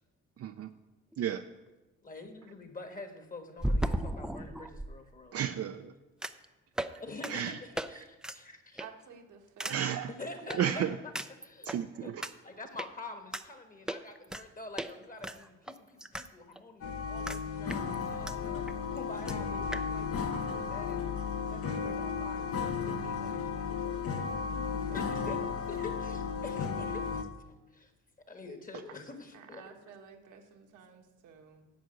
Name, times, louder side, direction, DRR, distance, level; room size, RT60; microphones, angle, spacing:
voice 1, 0.4-0.7 1.2-1.4 5.3-5.9 7.3-7.6 8.0-8.1 9.7-10.1 10.5-11.0 11.6-12.3, right 9 dB, 55° right, 6 dB, 0.5 m, -33 dB
sound 1, 1.1-1.2 3.6-4.9 6.2-6.4 6.8-7.0 7.2-7.3 7.8-7.9 8.2-8.4 8.8-9.0 9.6-9.8 10.5-10.6 11.1-11.8 12.2-12.3 12.8-12.9 13.3-13.4 13.9-14.4 14.8-14.9 15.2-16.3 16.6-16.7 17.3-17.4 17.7-18.3 18.7-18.8 19.0-19.1 19.3-19.4 19.7-19.8, right 1 dB, ahead, 0.4 m, -35 dB
voice 2, 2.0-5.4 7.0-8.8 10.2-11.1 11.4-11.7 12.0-12.1 12.4-21.0 21.5-22.5 22.8-24.0 24.8-25.4 25.7-27.9 28.3-29.7, left 2 dB, 30° left, 6 dB, 1.5 m, -46 dB
voice 3, 8.8-9.8 10.4-10.5 24.2-24.9 25.2-25.5 29.3-31.7, right 5 dB, 80° right, 2 dB, 1.4 m, -51 dB
sound 2, 16.8-27.2, left 6 dB, 50° left, 1.0 m, -34 dB
10.5 x 4.9 x 8.0 m, 1.1 s
cardioid pair, 90°, 30 cm